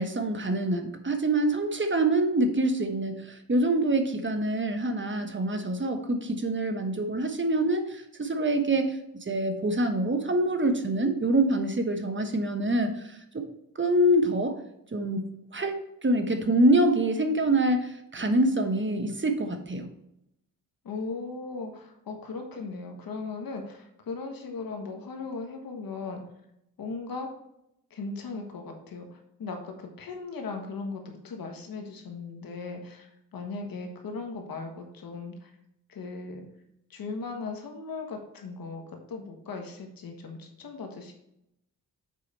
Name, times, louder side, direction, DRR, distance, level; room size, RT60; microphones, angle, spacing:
voice 1, 0.0-9.0 9.3-13.4 13.7-14.6 14.9-19.9, right 1 dB, 35° right, 6 dB, 1.2 m, -25 dB
voice 2, 20.8-26.2 26.8-27.3 27.9-35.5 35.9-36.4 36.9-41.1, left 4 dB, 90° left, 3 dB, 1.5 m, -38 dB
7.6 x 5.0 x 4.3 m, 0.79 s
cardioid pair, 70°, 34 cm